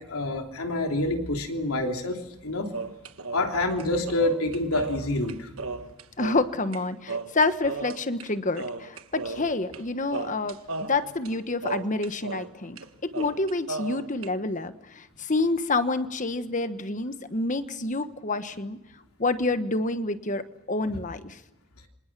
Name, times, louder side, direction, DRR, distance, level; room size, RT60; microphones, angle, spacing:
voice 1, 0.0-2.7 3.3-5.5 20.9-21.0, left 2 dB, 80° left, 3 dB, 3.3 m, -27 dB
sound 1, 2.7-6.8 7.1-8.3 8.5-9.8 10.1-12.5 12.8-12.9 13.1-14.3, right 3 dB, 70° right, 1.3 m, -35 dB
voice 2, 6.2-18.8 19.2-21.4, left 2 dB, 35° left, 10 dB, 1.2 m, -28 dB
27.5 x 26.5 x 6.1 m, 0.90 s
head